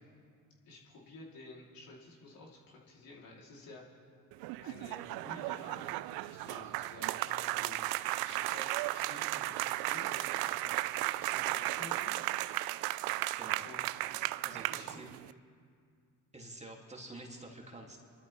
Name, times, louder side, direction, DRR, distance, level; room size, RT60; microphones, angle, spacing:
voice 1, 0.6-4.0 4.6-10.8 11.2-12.3 13.6-13.8 14.7-15.0, left 2 dB, 60° left, -3 dB, 3.3 m, -52 dB
sound 1, 4.3-15.3, right 18 dB, 70° right, 0.5 m, -35 dB
voice 2, 13.4-13.7 14.4-15.1 16.3-18.0, right 2 dB, 15° right, 0 dB, 2.5 m, -48 dB
28.0 x 12.5 x 3.4 m, 2.3 s
hypercardioid pair, 60°, 39 cm